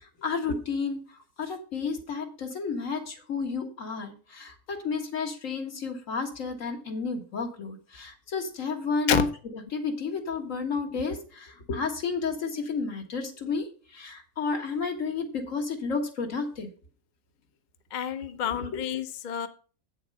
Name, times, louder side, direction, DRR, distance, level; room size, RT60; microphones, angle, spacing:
voice 1, 0.0-1.0 1.4-9.3 9.7-13.7 13.9-16.7 18.6-18.7, left 4 dB, 75° left, 3 dB, 1.9 m, -31 dB
voice 2, 17.9-19.5, left 8 dB, 45° left, 10 dB, 0.7 m, -28 dB
8.4 x 7.0 x 5.3 m, 0.38 s
omnidirectional pair, 1.4 m